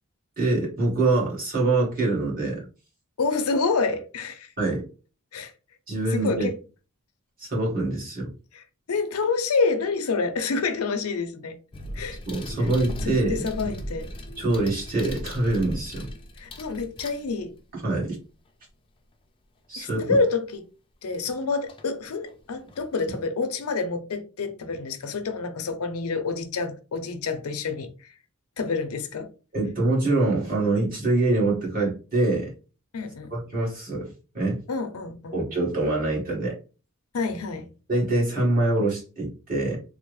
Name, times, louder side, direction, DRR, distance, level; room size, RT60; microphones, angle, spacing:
voice 1, 0.4-2.7 4.6-4.8 5.9-6.5 7.4-8.3 12.3-13.4 14.4-16.1 17.7-18.2 19.7-20.2 29.5-32.5 33.3-34.6 35.3-36.6 37.9-39.8, right 2 dB, 40° right, 1.5 m, -24 dB
voice 2, 3.2-4.5 5.3-5.5 6.1-6.6 8.5-8.6 8.9-11.6 11.9-12.2 12.6-12.7 13.0-14.1 16.4-17.5 19.8-20.6 21.0-28.1 28.6-29.3 32.9-33.3 34.7-35.4 37.1-37.7, left 4 dB, 85° left, 0.5 m, -28 dB
sound 1, 11.7-17.7 20.2-20.3 21.7-21.9 22.3-23.2, equal, 25° left, 0.4 m, -37 dB
3.4 x 2.0 x 3.1 m
head